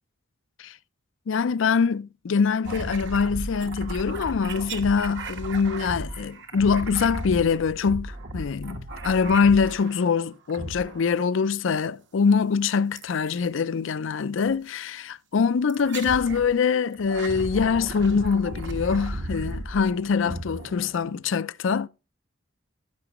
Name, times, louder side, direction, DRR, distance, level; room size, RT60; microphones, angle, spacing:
voice 1, 1.3-21.9, left 5 dB, 70° left, 0.4 m, -24 dB
sound 1, 2.7-10.1 10.5-11.3 13.0-13.4 14.4-14.5 15.7-16.5 16.9-21.3, right 1 dB, 60° right, 1.2 m, -35 dB
15.5 x 6.0 x 3.0 m
head